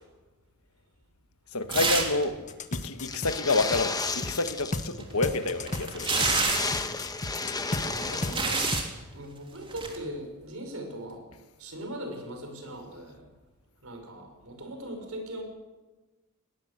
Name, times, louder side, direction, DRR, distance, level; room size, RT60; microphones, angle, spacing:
voice 1, 1.5-6.3, left 3 dB, 75° left, 9 dB, 1.5 m, -29 dB
sound 1, 1.7-2.2 2.5-2.6 5.0-6.8 7.7-8.9 9.7-10.0, right 3 dB, 25° right, 3.3 m, -28 dB
sound 2, 2.5-4.9 5.2-7.9 8.2-8.8, left 2 dB, 35° left, 1.3 m, -34 dB
sound 3, 3.0-5.0 5.2-5.3 5.6-5.7 6.0-8.7, left 4 dB, 15° left, 1.2 m, -33 dB
voice 2, 7.1-8.8 9.1-11.2 11.6-13.2 13.8-15.4, right 1 dB, 70° right, 5 dB, 5.6 m, -40 dB
21.0 x 18.0 x 8.2 m, 1.2 s
head